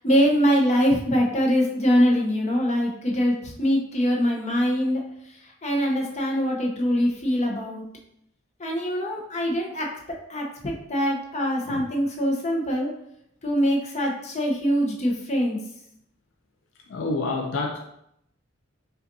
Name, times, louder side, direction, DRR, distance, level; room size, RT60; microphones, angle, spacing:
voice 1, 0.0-5.0 5.6-7.8 8.6-9.9 10.3-12.9 13.4-15.6, equal, 35° left, -1 dB, 0.7 m, -23 dB
voice 2, 16.9-17.8, left 3 dB, 65° left, 1 dB, 0.4 m, -28 dB
5.3 x 2.4 x 2.6 m, 0.76 s
head